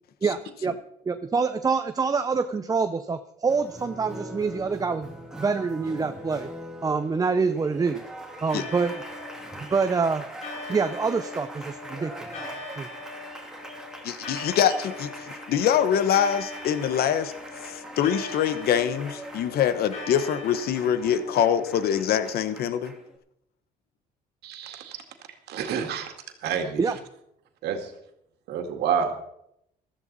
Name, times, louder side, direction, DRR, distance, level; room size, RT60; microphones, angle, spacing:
voice 1, 0.2-0.8 1.1-5.1 5.4-6.5 6.8-8.0 8.4-8.9 9.7-10.2 10.7-12.1 12.8-12.9 26.8-27.0, right 4 dB, 20° right, 0.6 m, -26 dB
Applause, 3.5-23.2, right 1 dB, 5° right, 2.3 m, -42 dB
sound 1, 8.5-22.4, left 3 dB, 40° left, 3.6 m, -41 dB
voice 2, 14.0-17.3 17.6-22.9, left 9 dB, 65° left, 1.1 m, -24 dB
voice 3, 24.4-25.0 25.5-26.1 26.4-26.9 27.6-27.9 28.5-29.2, right 7 dB, 75° right, 2.1 m, -28 dB
15.5 x 13.5 x 4.1 m
cardioid pair, 110°, 17 cm